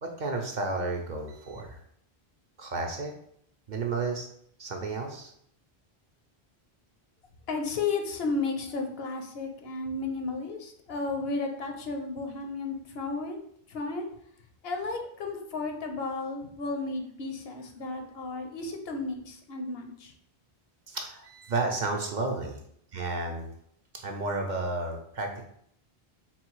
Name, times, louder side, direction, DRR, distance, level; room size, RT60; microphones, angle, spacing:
voice 1, 0.0-1.8 2.6-3.1 3.7-4.3 4.6-5.3 20.9-22.6 22.9-23.5 23.9-25.5, right 3 dB, 55° right, 2 dB, 0.7 m, -32 dB
voice 2, 7.5-13.4 13.7-14.1 14.6-20.1, left 3 dB, 70° left, 4 dB, 0.9 m, -33 dB
3.9 x 2.3 x 4.5 m, 0.67 s
omnidirectional pair, 1.1 m